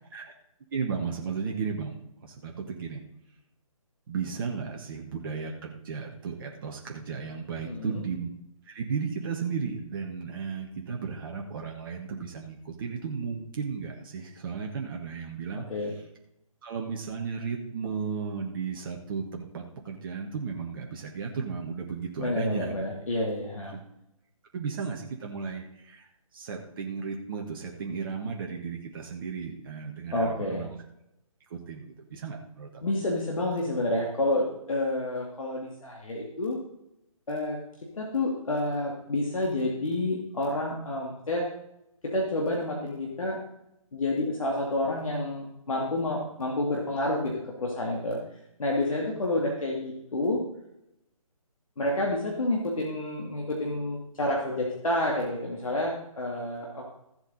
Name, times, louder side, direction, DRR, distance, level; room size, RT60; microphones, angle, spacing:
voice 1, 0.7-3.0 4.1-8.3 8.6-16.0 16.6-22.8 23.7-23.8 24.5-30.8 31.5-32.9, right 5 dB, 40° right, 0 dB, 1.5 m, -35 dB
voice 2, 22.2-23.7 30.1-30.6 32.8-36.6 37.3-37.6 37.9-41.5 42.0-43.4 43.9-48.2 48.6-50.4 51.8-56.8, left 1 dB, 65° left, -2 dB, 2.4 m, -29 dB
14.5 x 7.9 x 4.2 m, 0.83 s
figure-of-eight pair, 145°, 18 cm